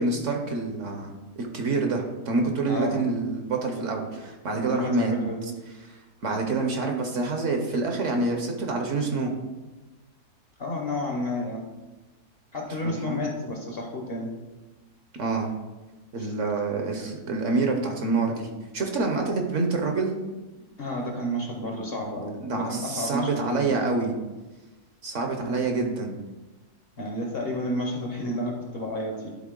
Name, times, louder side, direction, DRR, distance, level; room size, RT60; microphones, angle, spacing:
voice 1, 0.0-5.1 5.8-9.3 12.8-13.3 15.1-15.5 16.1-20.2 21.6-21.7 22.4-24.1 25.0-26.2, right 3 dB, 55° right, 3 dB, 1.0 m, -27 dB
voice 2, 2.7-3.0 4.5-5.5 10.6-11.6 12.5-14.3 16.2-16.3 20.6-23.8 27.0-29.4, left 1 dB, 45° left, 1 dB, 0.9 m, -31 dB
11.0 x 4.0 x 3.8 m, 1.1 s
omnidirectional pair, 1.7 m